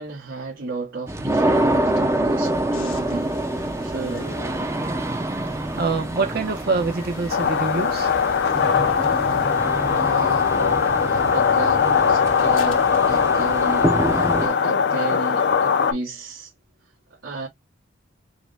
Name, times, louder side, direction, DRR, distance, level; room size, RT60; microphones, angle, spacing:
voice 1, 0.0-3.4 3.8-4.5 9.2-9.3 9.9-10.5 11.1-16.5 17.1-17.5, right 3 dB, 75° right, 1.5 m, -33 dB
sound 1, 1.1-14.5, right 1 dB, 15° right, 0.5 m, -26 dB
sound 2, 2.4-14.4, left 3 dB, 90° left, 1.2 m, -43 dB
voice 2, 5.8-8.1, right 3 dB, 50° right, 0.7 m, -25 dB
sound 3, 7.3-15.9, left 6 dB, 55° left, 0.5 m, -20 dB
4.8 x 2.2 x 3.4 m
head